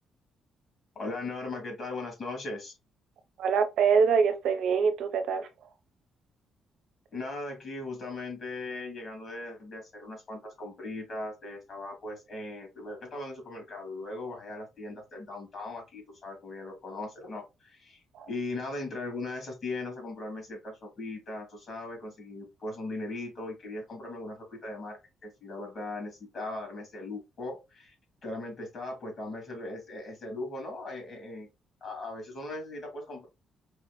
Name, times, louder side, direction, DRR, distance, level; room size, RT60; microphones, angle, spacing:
voice 1, 0.9-2.8 7.1-27.9 28.2-31.5 31.8-33.3, left 2 dB, 50° left, 2.6 m, -39 dB
voice 2, 3.4-5.5 18.1-18.3, right 6 dB, 75° right, 0.9 m, -24 dB
4.8 x 3.0 x 3.1 m
cardioid pair, 90°, 0 cm